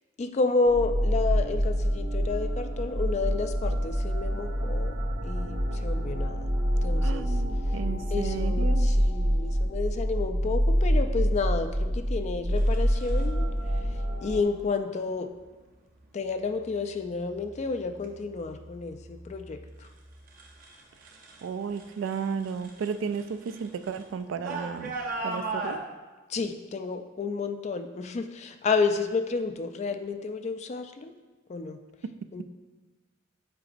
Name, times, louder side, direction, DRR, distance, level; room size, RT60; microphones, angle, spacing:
voice 1, 0.2-6.4 6.8-7.4 8.1-13.5 13.8-13.9 14.2-15.3 16.1-19.9 26.3-31.1 31.5-31.8 32.3-32.4, left 4 dB, 35° left, 8 dB, 0.3 m, -30 dB
sound 1, 0.7-14.4, equal, 90° right, 1.1 m, -26 dB
voice 2, 7.0-8.9 21.4-25.0 25.2-25.8, right 6 dB, 70° right, 11 dB, 0.3 m, -33 dB
sound 2, 12.6-13.2 14.4-14.7 15.3-15.7 16.3-16.8 17.2-21.5 21.7-25.8, right 3 dB, 45° right, 0.7 m, -39 dB
7.6 x 4.9 x 2.5 m, 1.3 s
head